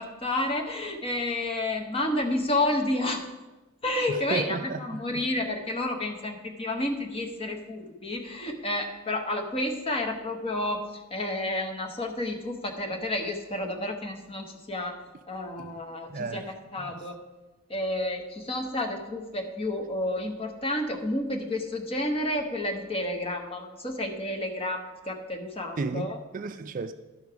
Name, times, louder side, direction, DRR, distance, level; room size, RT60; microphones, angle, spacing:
voice 1, 0.0-3.3 3.8-15.0 15.3-16.4 16.7-17.2 17.7-26.2, left 1 dB, 25° left, 1.0 m, -30 dB
voice 2, 4.1-5.2 16.1-16.5 16.8-16.9 25.8-26.9, right 4 dB, 40° right, 0.3 m, -33 dB
11.5 x 5.3 x 4.7 m
head